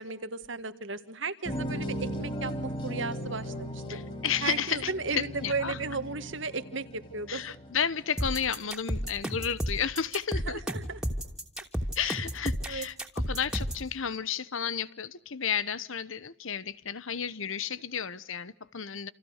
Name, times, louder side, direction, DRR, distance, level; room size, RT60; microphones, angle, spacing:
voice 1, 0.0-4.0 4.4-7.4 10.5-11.0 12.0-12.1 12.7-12.9, right 4 dB, 60° right, 10 dB, 1.9 m, -35 dB
sound 1, 1.4-8.5, equal, 25° left, 4.9 m, -38 dB
voice 2, 3.9-5.8 7.3-10.6 11.9-19.1, left 7 dB, 70° left, 17 dB, 1.1 m, -32 dB
sound 2, 8.2-13.9, equal, 5° right, 2.8 m, -32 dB
29.0 x 28.0 x 6.6 m, 0.74 s
head